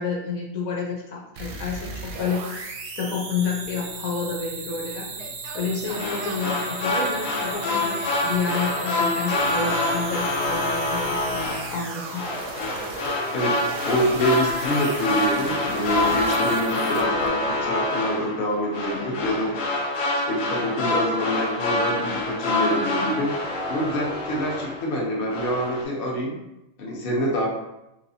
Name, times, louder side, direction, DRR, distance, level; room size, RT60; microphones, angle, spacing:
voice 1, 0.0-1.9 2.2-5.1 5.5-8.0 8.2-12.2, left 5 dB, 90° left, -2 dB, 1.3 m, -29 dB
sound 1, 1.4-17.3, right 3 dB, 80° right, 1.1 m, -36 dB
Yell, 5.1-6.7 7.7-8.7 11.3-13.1 13.5-14.3, right 3 dB, 65° right, 0.7 m, -42 dB
sound 2, 5.9-25.0 25.3-25.8, left 2 dB, 75° left, 1.1 m, -26 dB
voice 2, 13.3-19.5 20.3-23.3 23.7-26.4 26.8-27.5, equal, 50° left, -1 dB, 0.9 m, -26 dB
3.4 x 3.0 x 2.7 m, 0.92 s
omnidirectional pair, 1.4 m